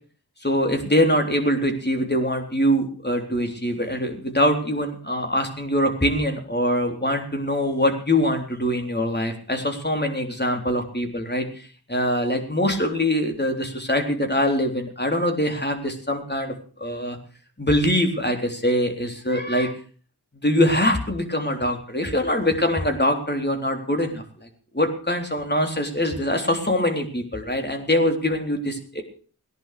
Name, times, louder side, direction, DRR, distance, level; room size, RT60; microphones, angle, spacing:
voice 1, 0.4-17.2 17.6-19.7 20.4-24.5 24.7-29.0, left 1 dB, 25° left, 4 dB, 3.7 m, -23 dB
18.5 x 10.5 x 6.7 m, 0.41 s
wide cardioid pair, 70°, 38 cm